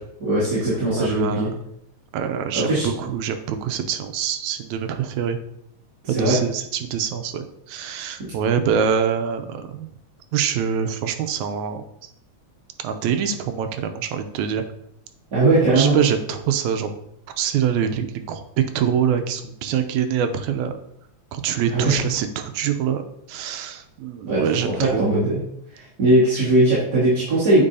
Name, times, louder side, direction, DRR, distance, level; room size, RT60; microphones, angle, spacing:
voice 1, 0.2-1.5 2.5-2.9 6.0-6.4 15.3-15.9 21.7-21.9 24.2-25.4 25.7-27.6, right 2 dB, 40° right, -12 dB, 2.6 m, -19 dB
voice 2, 1.0-1.5 2.1-5.4 6.1-9.9 10.3-11.8 12.8-14.6 15.7-16.9 17.4-18.4 18.8-20.7 21.3-23.0 23.3-25.1, right 8 dB, 90° right, 8 dB, 2.0 m, -24 dB
8.8 x 4.7 x 2.7 m, 0.72 s
omnidirectional pair, 3.3 m